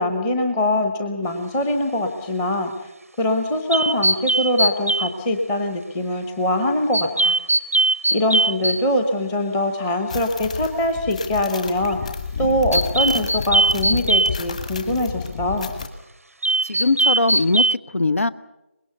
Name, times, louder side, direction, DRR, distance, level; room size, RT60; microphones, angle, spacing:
voice 1, 0.0-2.9 3.2-7.3 8.1-12.0 12.4-15.7, left 1 dB, 5° left, 6 dB, 0.9 m, -23 dB
sound 1, 3.7-5.1 6.9-8.8 12.7-14.3 16.4-17.7, right 2 dB, 90° right, 0.8 m, -20 dB
sound 2, 10.1-15.9, left 5 dB, 30° left, 1.8 m, -31 dB
voice 2, 16.6-18.3, left 3 dB, 70° left, 15 dB, 1.0 m, -21 dB
24.5 x 21.0 x 6.9 m, 0.96 s
figure-of-eight pair, 170°, 8 cm